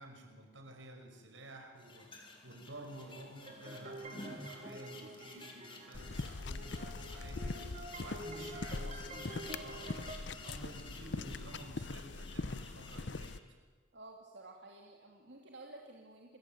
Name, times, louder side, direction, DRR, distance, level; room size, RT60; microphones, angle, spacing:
voice 1, 0.0-7.7 8.0-13.6, right 1 dB, 80° right, 5 dB, 5.6 m, -52 dB
sound 1, 1.8-13.4, left 2 dB, 25° left, 4.1 m, -52 dB
sound 2, 3.4-10.2, right 1 dB, 35° right, 4.2 m, -49 dB
sound 3, 5.9-13.4, left 3 dB, 65° left, 0.8 m, -42 dB
voice 2, 13.9-16.4, right 2 dB, 65° right, 1 dB, 2.9 m, -52 dB
28.0 x 21.5 x 9.4 m, 1.5 s
head